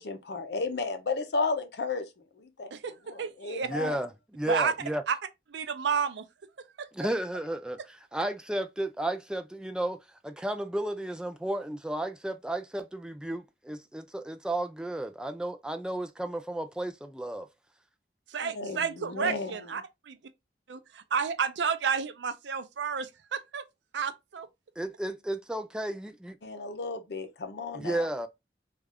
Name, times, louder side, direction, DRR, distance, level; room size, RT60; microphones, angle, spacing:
voice 1, 0.0-2.1 2.4-2.7 3.1-4.0 18.4-19.7 26.4-28.1, left 3 dB, 65° left, 0.6 m, -33 dB
voice 2, 2.7-3.7 4.5-4.7 5.1-5.2 5.5-6.3 6.8-6.9 18.3-20.2 20.7-23.6 23.9-24.5, right 6 dB, 80° right, 0.5 m, -31 dB
voice 3, 3.7-5.0 6.9-17.5 24.8-26.4 27.7-28.3, right 1 dB, 5° right, 0.3 m, -33 dB
3.3 x 2.4 x 3.4 m
head